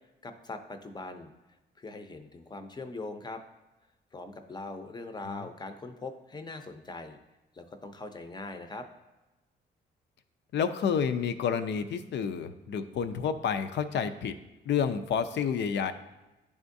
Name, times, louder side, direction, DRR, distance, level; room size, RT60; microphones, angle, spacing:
voice 1, 0.2-1.3 1.8-3.4 4.1-7.2 7.5-8.9, left 2 dB, 20° left, 7 dB, 0.6 m, -41 dB
voice 2, 10.5-14.3 14.7-15.9, left 7 dB, 65° left, 10 dB, 0.5 m, -29 dB
10.5 x 3.6 x 2.6 m, 1.1 s
cardioid pair, 90°, 20 cm